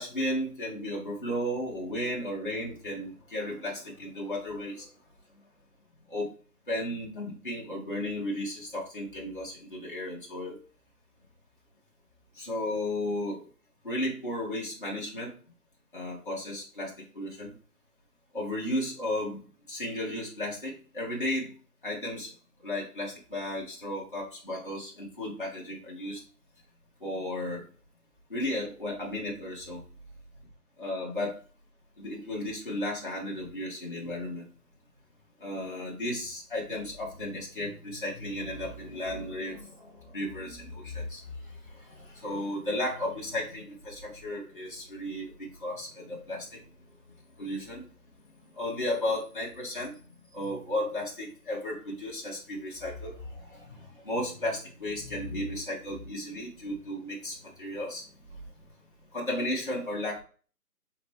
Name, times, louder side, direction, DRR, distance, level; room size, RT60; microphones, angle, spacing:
voice 1, 0.0-4.9 6.1-6.3 6.7-10.6 12.4-13.4 13.8-15.3 15.9-17.5 18.3-19.4 19.7-21.5 21.8-22.3 22.6-26.2 27.0-27.6 28.3-29.8 30.8-31.4 32.0-34.4 35.4-41.2 41.7-46.6 47.4-47.9 48.5-49.9 50.3-58.0 59.1-60.2, left 1 dB, 35° left, -5 dB, 1.1 m, -34 dB
4.8 x 3.2 x 3.3 m, 0.40 s
figure-of-eight pair, 175°, 47 cm